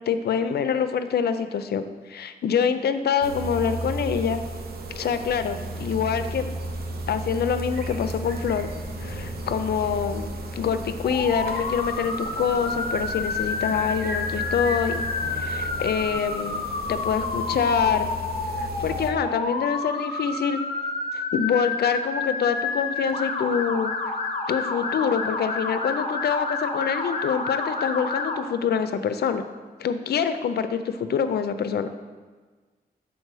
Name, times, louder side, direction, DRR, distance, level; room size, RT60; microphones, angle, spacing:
voice 1, 0.1-4.4 5.0-6.5 7.1-8.7 9.0-15.0 15.3-18.1 18.6-20.6 21.1-24.1 24.5-29.4 29.8-31.9, left 7 dB, 90° left, 10 dB, 0.4 m, -26 dB
sound 1, 3.2-19.1, right 1 dB, 70° right, 0.7 m, -34 dB
Bass guitar, 8.9-12.0, left 2 dB, 90° right, 2.0 m, -47 dB
Motor vehicle (road) / Siren, 11.0-28.4, left 3 dB, 40° left, 0.7 m, -29 dB
6.6 x 4.4 x 4.7 m, 1.4 s
wide cardioid pair, 150°, 16 cm